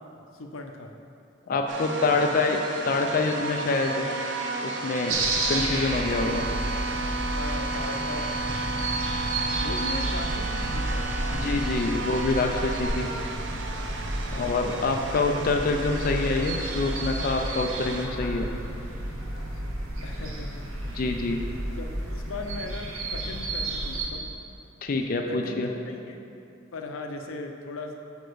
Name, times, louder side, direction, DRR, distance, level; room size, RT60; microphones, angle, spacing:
voice 1, 0.3-0.9 2.0-2.6 7.3-9.0 9.6-11.5 14.2-14.9 20.0-20.6 21.8-24.3 25.3-26.2 26.7-27.9, left 3 dB, 85° left, 4 dB, 0.6 m, -39 dB
voice 2, 1.5-2.6 2.8-4.1 4.6-5.2 5.5-6.4 11.3-13.1 14.4-18.5 20.9-21.4 24.8-25.7, left 3 dB, 45° left, 3 dB, 0.4 m, -26 dB
sound 1, 1.7-18.1, right 3 dB, 60° right, 0.5 m, -33 dB
sound 2, 5.1-24.1, right 1 dB, 85° right, 0.9 m, -32 dB
5.1 x 5.0 x 6.1 m, 2.7 s
head